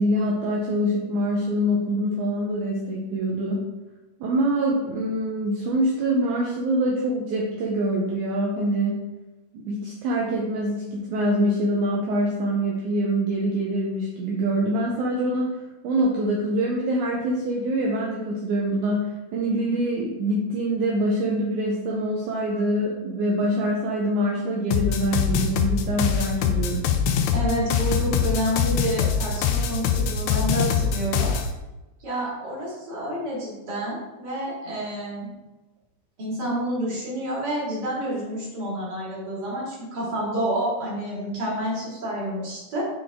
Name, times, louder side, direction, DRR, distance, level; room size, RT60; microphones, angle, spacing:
voice 1, 0.0-3.7 4.2-9.0 9.5-15.5 15.8-26.8, right 1 dB, 75° right, -3 dB, 2.1 m, -25 dB
sound 1, 24.7-31.5, left 7 dB, 90° left, 1.6 m, -23 dB
voice 2, 27.3-31.3 32.0-35.3 36.2-42.8, right 1 dB, 35° right, -6 dB, 2.6 m, -29 dB
7.7 x 4.1 x 3.5 m, 1.1 s
omnidirectional pair, 3.8 m